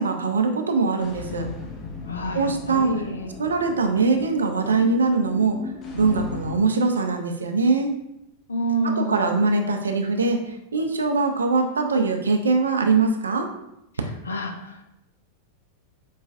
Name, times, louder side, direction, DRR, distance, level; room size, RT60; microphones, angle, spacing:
voice 1, 0.0-1.5 2.3-2.9 3.4-5.6 5.9-7.9 8.8-10.4 10.7-13.5, right 4 dB, 70° right, 4 dB, 0.4 m, -22 dB
sound 1, 1.0-6.6, left 4 dB, 30° left, 0.6 m, -37 dB
voice 2, 2.1-3.3 8.5-9.3 14.3-14.8, right 1 dB, 75° left, 3 dB, 0.5 m, -28 dB
4.8 x 2.3 x 2.4 m, 0.83 s
figure-of-eight pair, 90°, 0 cm